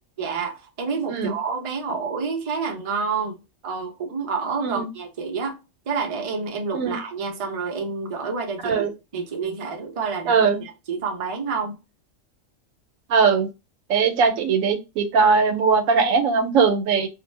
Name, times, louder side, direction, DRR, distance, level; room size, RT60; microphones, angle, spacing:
voice 1, 0.2-5.6 5.9-11.8, right 5 dB, 50° right, 0.4 m, -29 dB
voice 2, 10.3-10.6 13.1-13.5 13.9-17.1, right 5 dB, 85° right, 1.0 m, -20 dB
2.4 x 2.1 x 3.1 m
omnidirectional pair, 1.3 m